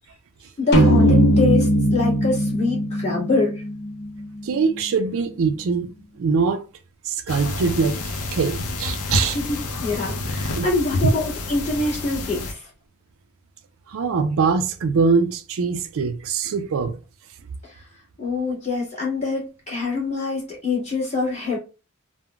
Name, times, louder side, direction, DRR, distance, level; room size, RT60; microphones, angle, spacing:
voice 1, 0.6-3.6 9.3-12.7 17.6-17.9 18.2-21.6, left 3 dB, 30° left, 1.6 m, -25 dB
sound 1, 0.7-4.2, right 1 dB, 55° left, 0.9 m, -19 dB
voice 2, 4.4-6.6 7.1-9.4 10.5-10.7 13.9-17.0, right 5 dB, 65° right, 0.4 m, -23 dB
sound 2, 7.3-12.5, left 2 dB, 85° left, 0.6 m, -28 dB
3.6 x 2.0 x 2.2 m
head